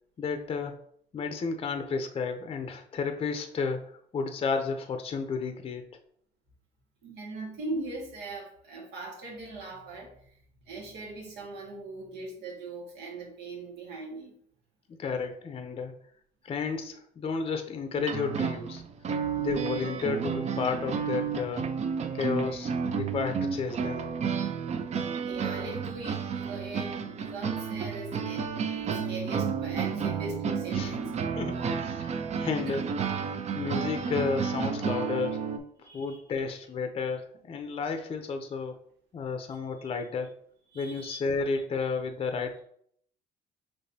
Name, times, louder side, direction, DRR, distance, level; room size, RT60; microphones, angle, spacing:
voice 1, 0.2-0.8 1.1-5.8 14.9-15.9 16.4-18.8 19.4-21.7 22.1-24.1 30.7-31.0 31.4-32.8 33.2-35.4 35.9-38.8 39.1-40.3 40.7-42.6, left 5 dB, 35° left, 6 dB, 0.5 m, -32 dB
voice 2, 7.0-10.1 10.7-14.3 25.2-31.2 31.6-31.8 32.6-32.8 35.8-36.3 39.5-39.6 40.7-41.2, right 2 dB, 90° right, -1 dB, 1.5 m, -40 dB
sound 1, 17.9-35.6, right 6 dB, 40° right, 0.5 m, -31 dB
5.9 x 3.1 x 2.7 m, 0.65 s
cardioid pair, 110°, 17 cm